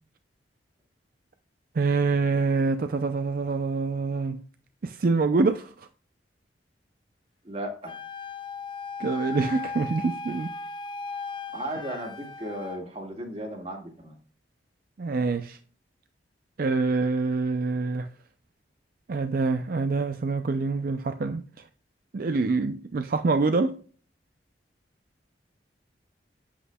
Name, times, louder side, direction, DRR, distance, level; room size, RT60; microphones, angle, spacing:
voice 1, 1.7-4.4 4.8-5.9 9.0-10.5 15.0-15.6 16.6-18.1 19.1-21.6 22.1-23.8, right 4 dB, 50° right, 0.4 m, -26 dB
voice 2, 7.4-7.9 11.5-14.2, right 1 dB, 35° right, 1.8 m, -35 dB
Wind instrument woodwind instrument, 7.9-12.8, left 4 dB, 25° left, 0.5 m, -37 dB
8.1 x 8.0 x 2.2 m
head